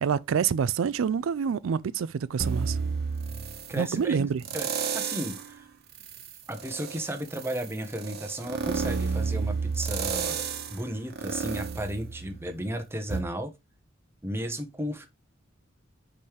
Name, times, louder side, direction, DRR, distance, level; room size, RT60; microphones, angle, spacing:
voice 1, 0.0-2.8 3.8-4.4, right 7 dB, 80° right, 0.4 m, -27 dB
sound 1, 2.4-3.8 4.4-5.5 5.9-12.6 13.1-13.2, right 5 dB, 55° right, 1.3 m, -31 dB
voice 2, 3.7-5.7 6.5-10.4 10.7-13.5 14.2-15.1, right 1 dB, 10° right, 1.1 m, -34 dB
5.4 x 5.2 x 4.6 m
head